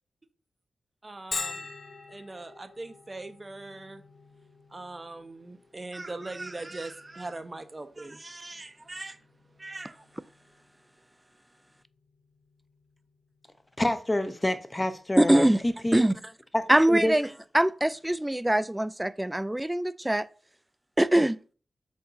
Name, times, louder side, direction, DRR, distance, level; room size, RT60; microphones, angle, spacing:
voice 1, 1.0-1.7 2.1-4.0 4.7-9.2 9.6-10.1, right 2 dB, 25° right, 1.0 m, -40 dB
Bell, 1.3-16.8, left 4 dB, 50° left, 1.0 m, -46 dB
voice 2, 13.8-16.1 16.5-17.1, left 1 dB, 15° left, 1.0 m, -28 dB
voice 3, 15.2-15.6 15.9-16.1 16.7-17.3 17.5-20.3 21.0-21.4, right 1 dB, 10° right, 0.4 m, -22 dB
5.9 x 5.3 x 6.7 m
wide cardioid pair, 135°, 0 cm